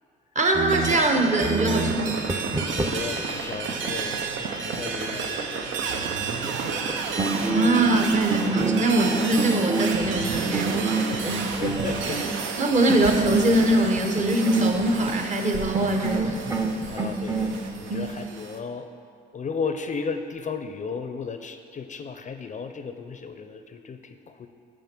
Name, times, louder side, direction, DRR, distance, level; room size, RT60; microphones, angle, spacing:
voice 1, 0.3-2.2 7.5-11.2 12.6-16.4 17.9-18.1, right 2 dB, 35° right, 4 dB, 0.9 m, -23 dB
sound 1, 0.5-3.2 6.8-6.9 7.2-12.3 12.9-15.2 15.7-17.5, right 3 dB, 15° right, 0.6 m, -28 dB
sound 2, 0.7-18.6, right 5 dB, 80° right, 0.7 m, -31 dB
voice 2, 2.7-7.2 11.6-12.2 16.9-18.9 19.3-24.5, left 5 dB, 40° left, 8 dB, 0.5 m, -35 dB
7.2 x 5.2 x 6.0 m, 2.3 s
cardioid pair, 90°, 20 cm